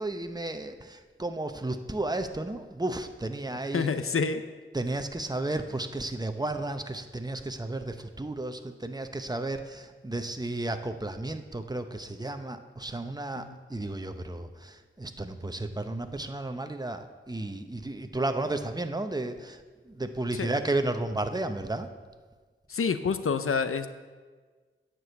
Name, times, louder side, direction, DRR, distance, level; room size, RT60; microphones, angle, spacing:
voice 1, 0.0-3.9 4.7-21.9, right 2 dB, 20° right, 7 dB, 0.8 m, -33 dB
voice 2, 3.7-4.4 13.4-13.6 20.3-20.5 22.7-23.9, left 5 dB, 85° left, 10 dB, 0.6 m, -28 dB
9.5 x 6.2 x 8.0 m, 1.4 s
wide cardioid pair, 50°, 21 cm